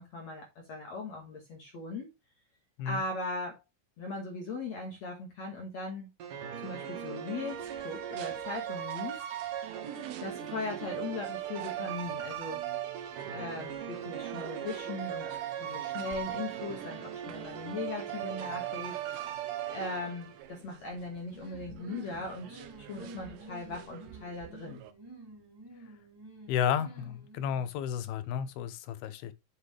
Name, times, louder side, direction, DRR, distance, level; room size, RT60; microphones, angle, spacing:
voice 1, 0.0-2.1 2.8-3.6 4.0-6.1 6.6-9.4 10.2-12.6 13.3-24.8, left 3 dB, 50° left, 2.8 m, -39 dB
sound 1, 6.2-20.5, right 10 dB, 65° right, 2.9 m, -38 dB
sound 2, 7.4-24.9, right 12 dB, 85° right, 2.7 m, -50 dB
sound 3, 21.3-27.7, right 2 dB, 5° right, 2.3 m, -50 dB
voice 2, 26.5-29.3, left 8 dB, 80° left, 2.9 m, -32 dB
8.1 x 8.1 x 3.4 m
omnidirectional pair, 4.4 m